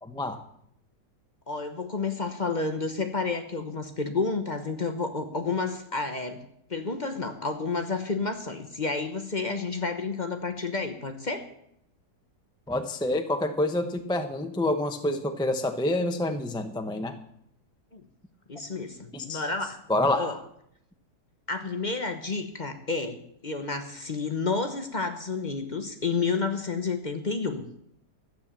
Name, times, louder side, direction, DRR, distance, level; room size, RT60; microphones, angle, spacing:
voice 1, 0.0-0.4 12.7-17.2 19.1-19.4 19.9-20.4, left 1 dB, 5° left, 6 dB, 0.5 m, -27 dB
voice 2, 1.5-6.4 6.7-11.4 17.9-18.0 18.5-19.8 20.2-20.4 21.5-23.2 23.4-27.6, left 4 dB, 30° left, 7 dB, 1.0 m, -30 dB
13.0 x 9.2 x 7.4 m, 0.73 s
omnidirectional pair, 1.9 m